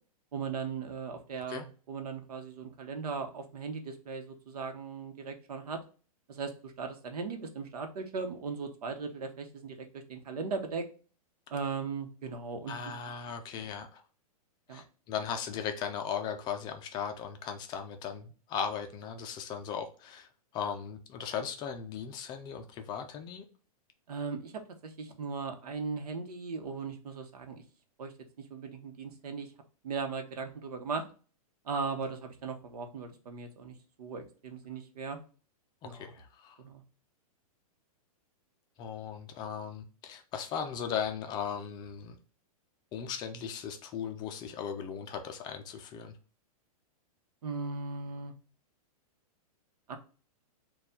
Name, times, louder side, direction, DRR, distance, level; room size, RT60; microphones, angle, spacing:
voice 1, 0.3-5.8 6.3-10.9 11.5-12.9 13.6-13.7 14.7-14.8 24.1-27.6 28.0-28.1 28.4-29.5 29.8-31.0 31.6-35.2 35.8-36.1 36.6-36.8 47.4-48.3 49.9-50.0, right 4 dB, 80° right, 5 dB, 0.9 m, -38 dB
voice 2, 12.7-14.0 14.7-23.4 35.9-36.6 38.8-42.2 42.9-46.2, left 7 dB, 20° left, 6 dB, 0.4 m, -37 dB
4.3 x 2.3 x 3.6 m, 0.38 s
hypercardioid pair, 145°, 19 cm